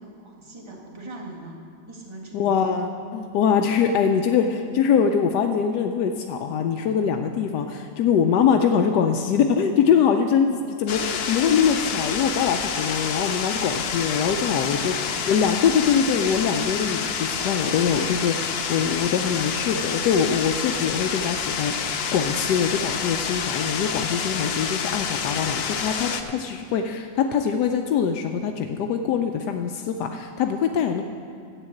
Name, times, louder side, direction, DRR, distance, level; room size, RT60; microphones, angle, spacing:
voice 1, 0.0-1.6 1.9-2.7 14.6-15.9, right 2 dB, 20° right, -1 dB, 1.6 m, -41 dB
voice 2, 2.3-14.9 15.3-31.0, left 7 dB, 85° left, 5 dB, 1.2 m, -23 dB
sound 1, 10.9-26.2, left 6 dB, 55° left, 0.7 m, -28 dB
11.0 x 8.3 x 7.7 m, 2.4 s
omnidirectional pair, 1.7 m